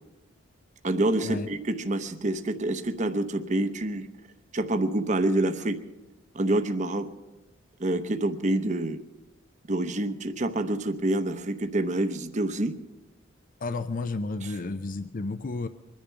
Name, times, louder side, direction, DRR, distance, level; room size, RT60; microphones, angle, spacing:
voice 1, 0.8-4.1 4.5-5.8 6.3-7.1 7.8-9.0 9.7-12.7, right 1 dB, 40° right, 9 dB, 0.8 m, -27 dB
voice 2, 13.6-15.7, left 3 dB, 45° left, 11 dB, 0.5 m, -32 dB
24.0 x 10.5 x 5.7 m, 1.1 s
head